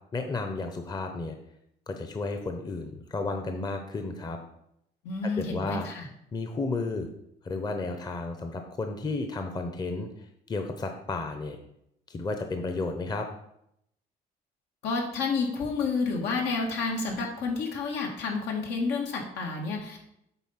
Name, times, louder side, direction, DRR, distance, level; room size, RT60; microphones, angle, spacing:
voice 1, 0.1-1.3 1.9-4.4 5.2-5.9 6.3-7.1 7.4-11.6 12.1-13.3, left 3 dB, 25° left, 5 dB, 0.8 m, -33 dB
voice 2, 5.0-6.1 14.8-20.0, left 4 dB, 85° left, 1 dB, 1.9 m, -30 dB
8.1 x 4.1 x 5.7 m, 0.78 s
cardioid pair, 110°, 17 cm